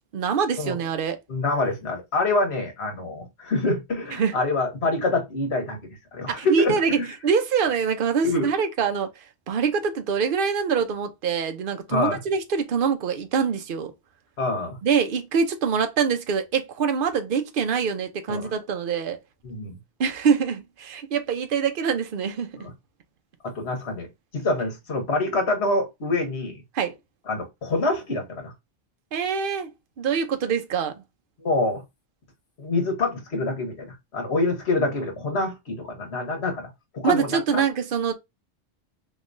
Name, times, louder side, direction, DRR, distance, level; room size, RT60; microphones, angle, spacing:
voice 1, 0.1-1.2 4.1-4.3 6.3-13.9 14.8-19.2 20.0-22.5 26.7-26.9 29.1-31.0 37.0-38.1, right 6 dB, 55° right, 0.8 m, -24 dB
voice 2, 1.3-7.1 8.2-8.5 11.9-12.2 14.4-14.8 18.3-18.5 19.4-19.8 22.6-22.7 23.4-24.1 24.3-26.6 27.3-28.5 31.4-31.8 32.6-36.7 36.9-37.6, left 2 dB, 75° left, 1.4 m, -26 dB
3.9 x 3.0 x 2.5 m
omnidirectional pair, 1.1 m